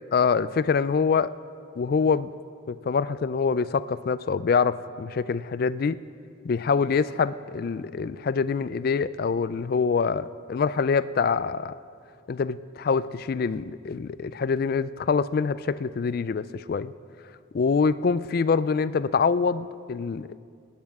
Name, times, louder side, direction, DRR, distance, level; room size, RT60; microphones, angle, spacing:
voice 1, 0.1-1.3 1.8-2.3 2.7-6.0 6.4-11.7 12.3-16.9 17.5-20.4, left 5 dB, 45° left, 16 dB, 0.3 m, -25 dB
20.0 x 9.3 x 4.8 m, 2.3 s
head